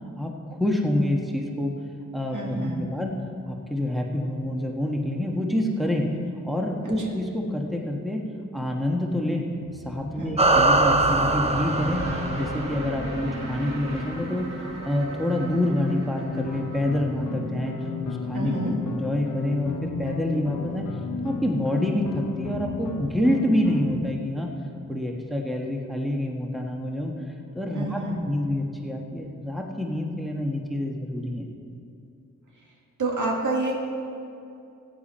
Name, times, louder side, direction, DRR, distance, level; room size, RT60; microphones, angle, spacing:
voice 1, 0.2-1.7 2.1-3.1 3.5-6.1 6.4-8.2 8.5-9.5 9.7-12.0 12.4-14.5 14.8-17.7 18.0-18.5 18.9-20.8 21.2-24.5 24.9-27.1 27.5-28.0 28.3-31.5, left 1 dB, ahead, 0 dB, 1.5 m, -27 dB
voice 2, 2.3-3.0 6.8-7.1 10.2-10.4 18.3-18.7 27.7-28.2 33.0-33.7, right 2 dB, 75° right, -1 dB, 2.1 m, -29 dB
sound 1, 9.6-18.7, right 1 dB, 55° right, 3.0 m, -35 dB
sound 2, 10.4-13.1, right 2 dB, 20° right, 0.7 m, -22 dB
sound 3, 16.3-23.9, left 5 dB, 85° left, 1.0 m, -33 dB
14.5 x 9.1 x 4.4 m, 2.5 s
cardioid pair, 65°, 31 cm